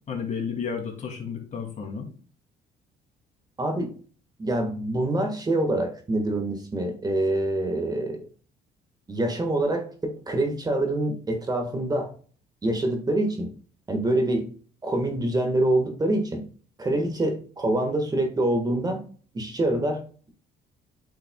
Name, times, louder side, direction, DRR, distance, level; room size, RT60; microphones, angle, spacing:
voice 1, 0.1-2.1, left 6 dB, 45° left, 1 dB, 2.5 m, -32 dB
voice 2, 3.6-3.9 4.4-8.3 9.1-12.1 12.6-13.5 13.9-14.5 14.8-16.4 16.8-19.0 19.3-20.0, right 1 dB, 25° right, 4 dB, 1.5 m, -25 dB
8.9 x 5.7 x 2.2 m, 0.41 s
cardioid pair, 110°, 17 cm